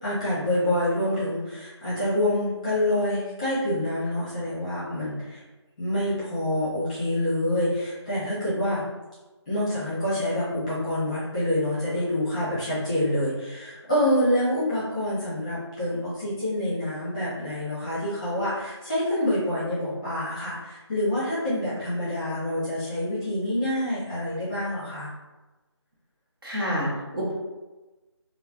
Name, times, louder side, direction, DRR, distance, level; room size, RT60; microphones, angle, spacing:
voice 1, 0.0-5.4 5.8-8.8 9.5-25.1, left 1 dB, 15° left, -12 dB, 0.9 m, -27 dB
voice 2, 26.4-27.3, equal, 50° right, -6 dB, 0.9 m, -28 dB
3.1 x 2.2 x 2.3 m, 1.1 s
figure-of-eight pair, 170°, 15 cm